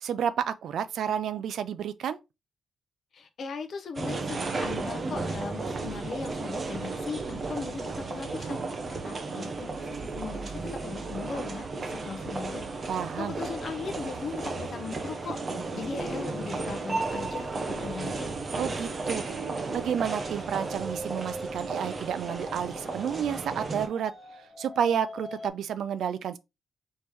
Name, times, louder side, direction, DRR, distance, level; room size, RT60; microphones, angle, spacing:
voice 1, 0.0-2.2 12.9-13.3 18.6-19.2 19.7-24.1 24.6-26.4, right 8 dB, 70° right, 0.4 m, -30 dB
voice 2, 3.1-8.6 9.0-15.4 15.7-18.3, left 5 dB, 45° left, 0.7 m, -38 dB
sound 1, 4.0-23.9, right 3 dB, 30° right, 0.7 m, -34 dB
sound 2, 16.7-25.5, right 1 dB, 10° right, 1.0 m, -44 dB
4.4 x 3.1 x 3.4 m
wide cardioid pair, 175°, 0 cm